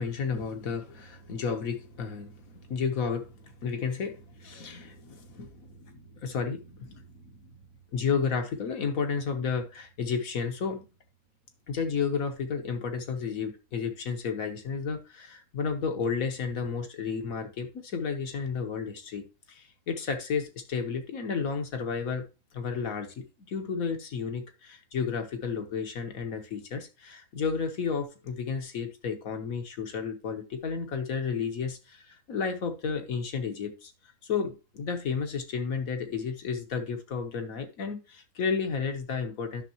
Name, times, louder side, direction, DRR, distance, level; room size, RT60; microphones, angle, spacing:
voice 1, 0.0-7.5 7.9-10.9 11.7-22.3 22.5-33.9 34.2-39.6, left 5 dB, 90° left, 1.7 m, -32 dB
10.0 x 6.4 x 3.0 m
omnidirectional pair, 1.4 m